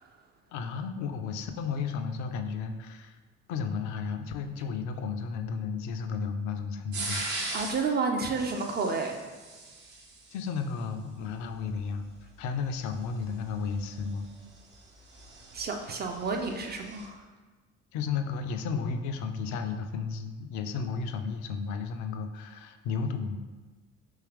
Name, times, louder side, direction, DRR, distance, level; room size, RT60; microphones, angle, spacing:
voice 1, 0.5-3.2 3.5-7.2 10.3-14.3 17.9-23.4, left 5 dB, 45° left, 7 dB, 0.4 m, -33 dB
sound 1, 6.9-7.9 8.3-10.4 13.0-17.1, right 2 dB, 70° right, 0.9 m, -40 dB
voice 2, 7.5-9.2 15.5-17.2, right 4 dB, 25° right, 3 dB, 0.4 m, -30 dB
3.6 x 2.8 x 3.0 m, 1.3 s
figure-of-eight pair, 50°, 40 cm